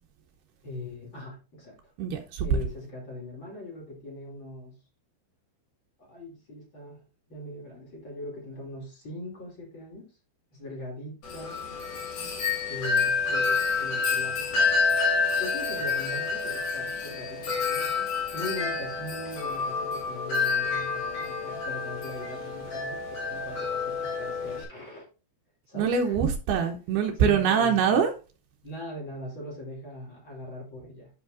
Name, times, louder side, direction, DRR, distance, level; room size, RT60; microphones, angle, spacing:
voice 1, 0.6-1.8 2.4-4.7 6.0-10.0 10.5-11.6 12.7-15.0 15.4-18.1 18.3-25.1 25.7-26.2 27.2-28.0 28.6-31.1, left 1 dB, 30° left, -3 dB, 2.5 m, -40 dB
voice 2, 2.0-2.5 25.8-28.1, right 7 dB, 85° right, 3 dB, 2.2 m, -24 dB
Wind chime, 11.2-24.6, left 4 dB, 50° left, 3.1 m, -28 dB
13.0 x 4.8 x 2.5 m, 0.33 s
omnidirectional pair, 5.7 m